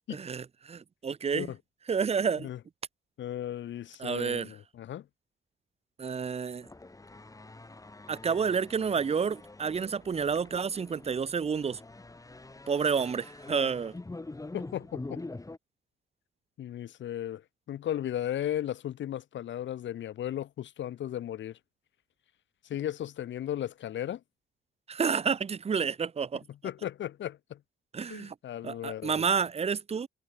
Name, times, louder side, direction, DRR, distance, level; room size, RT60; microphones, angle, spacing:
voice 1, 0.1-1.5 1.9-2.5 4.0-4.5 6.0-6.7 8.1-11.8 12.7-13.9 24.9-26.4 27.9-28.3 28.6-30.1, right 6 dB, 30° right, 0.8 m, -30 dB
voice 2, 3.2-5.1 14.5-15.2 16.6-21.6 22.7-24.2 26.5-27.6 28.0-29.3, left 11 dB, 70° left, 2.1 m, -36 dB
sound 1, 6.6-15.6, left 2 dB, 15° left, 5.9 m, -45 dB
cardioid pair, 90°, 20 cm